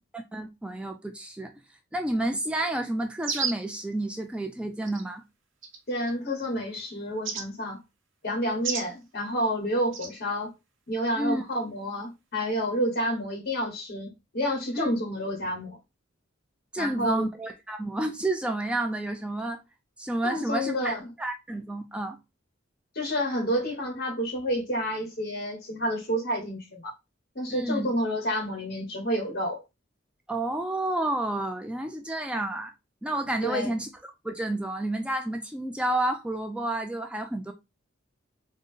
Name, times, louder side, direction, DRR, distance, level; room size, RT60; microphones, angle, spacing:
voice 1, 0.1-1.5 1.9-5.2 11.2-11.5 14.7-14.9 16.7-19.6 20.0-22.2 27.5-27.9 30.3-32.7 33.0-37.5, right 1 dB, 5° right, 0.3 m, -30 dB
sound 1, 3.2-3.7 4.9-5.0 5.6-6.1 7.2-7.5 8.6-8.9 9.9-10.1, right 5 dB, 75° right, 0.9 m, -31 dB
voice 2, 5.9-7.8 8.2-10.5 10.9-15.8 16.8-17.3 20.2-21.1 22.9-26.8 27.3-29.6 33.4-33.7, equal, 55° left, 1.3 m, -29 dB
3.8 x 2.0 x 3.7 m
head